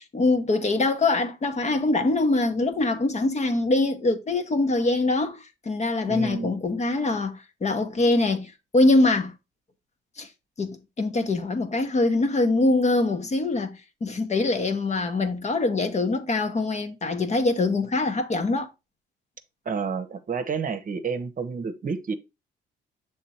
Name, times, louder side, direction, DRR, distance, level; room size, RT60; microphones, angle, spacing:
voice 1, 0.0-9.3 10.2-10.3 10.6-18.7, left 2 dB, 35° left, 1.0 m, -23 dB
voice 2, 6.1-6.5 19.7-22.1, right 5 dB, 40° right, 0.9 m, -30 dB
6.7 x 3.6 x 4.3 m
cardioid pair, 90°, 20 cm